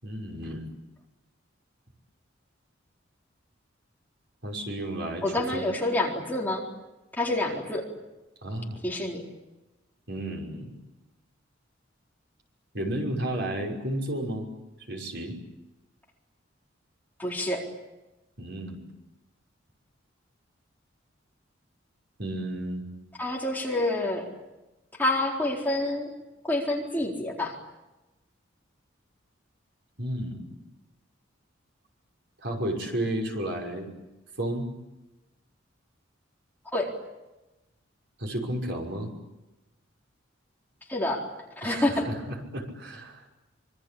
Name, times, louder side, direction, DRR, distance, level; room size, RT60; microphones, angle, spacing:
voice 1, 0.0-0.7 4.4-5.6 8.4-8.8 10.1-10.7 12.7-14.5 14.9-15.4 18.4-18.8 22.2-22.9 30.0-30.6 32.4-33.9 34.4-34.7 38.2-39.1 41.6-43.2, right 1 dB, 60° right, 1 dB, 5.9 m, -32 dB
voice 2, 5.2-6.6 7.1-7.9 8.8-9.2 17.2-17.7 23.2-24.3 25.0-26.1 26.4-27.6 36.7-36.9 40.9-41.3 41.6-42.1, left 1 dB, 10° left, -2 dB, 4.1 m, -27 dB
26.0 x 24.5 x 8.7 m, 1.0 s
head